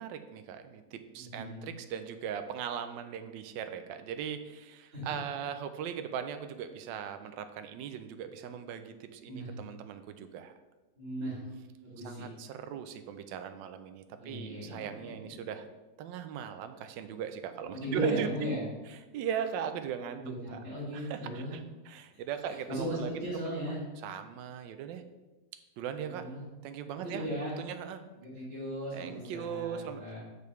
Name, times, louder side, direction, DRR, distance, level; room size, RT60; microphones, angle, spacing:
voice 1, 0.0-10.5 12.0-15.7 16.0-18.6 18.9-20.2 20.5-20.6 20.9-23.1 23.4-25.0 25.8-26.3 26.6-27.2 27.6-28.0 28.9-30.2, right 8 dB, 75° right, 9 dB, 1.1 m, -39 dB
voice 2, 1.1-1.7 4.9-5.1 9.2-9.5 11.0-11.5 11.8-12.3 14.2-15.1 17.7-18.6 20.2-21.6 22.1-22.2 22.5-23.8 26.1-26.4 27.0-27.6 28.2-30.2, equal, 30° right, -11 dB, 2.7 m, -37 dB
6.8 x 6.7 x 3.1 m, 1.1 s
omnidirectional pair, 2.4 m